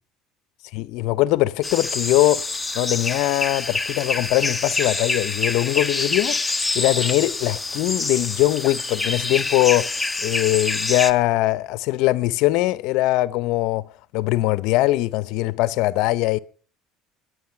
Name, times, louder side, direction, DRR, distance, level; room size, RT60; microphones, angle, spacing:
voice 1, 0.7-2.4 2.7-6.4 6.7-13.8 14.1-16.4, left 17 dB, 75° left, 0.7 m, -21 dB
sound 1, 1.6-11.1, left 3 dB, 15° left, 1.2 m, -26 dB
22.0 x 9.5 x 5.8 m
supercardioid pair, 90°, 0 cm